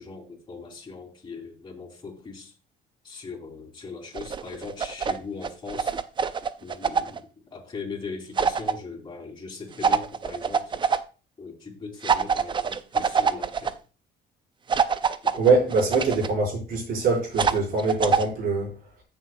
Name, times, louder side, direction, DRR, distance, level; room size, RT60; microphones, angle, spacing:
voice 1, 0.0-2.5 3.0-5.9 6.6-10.8 11.4-13.8 15.2-15.5, left 4 dB, 25° left, 3.2 m, -39 dB
sound 1, 4.1-5.2 5.4-7.2 8.4-8.7 9.8-11.0 12.0-13.7 14.7-16.3 17.4-18.3, right 6 dB, 30° right, 0.5 m, -24 dB
voice 2, 15.4-18.8, right 3 dB, 60° right, 5.1 m, -23 dB
14.0 x 7.0 x 2.3 m
cardioid pair, 110°, 17 cm